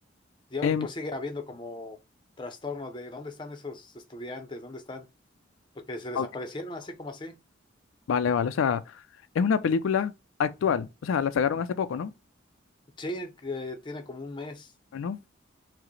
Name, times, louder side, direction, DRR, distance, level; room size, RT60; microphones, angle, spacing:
voice 1, 0.5-2.0 2.4-5.1 5.8-7.3 13.0-14.7, left 2 dB, 25° left, 0.5 m, -37 dB
voice 2, 8.1-8.8 9.4-10.1 10.4-12.1 14.9-15.2, left 6 dB, 85° left, 0.3 m, -26 dB
4.7 x 2.0 x 3.0 m
head